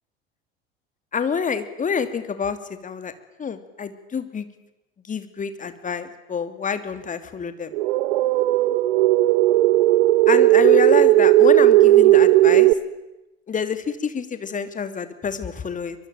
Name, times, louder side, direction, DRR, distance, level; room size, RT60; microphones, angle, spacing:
voice 1, 1.1-2.6 2.8-3.1 3.4-4.5 5.1-7.7 10.3-12.7 13.5-16.0, left 6 dB, 25° left, 10 dB, 2.6 m, -27 dB
sound 1, 7.7-12.7, right 16 dB, 60° right, 1.2 m, -15 dB
24.0 x 22.5 x 9.2 m, 0.99 s
figure-of-eight pair, 75°, 32 cm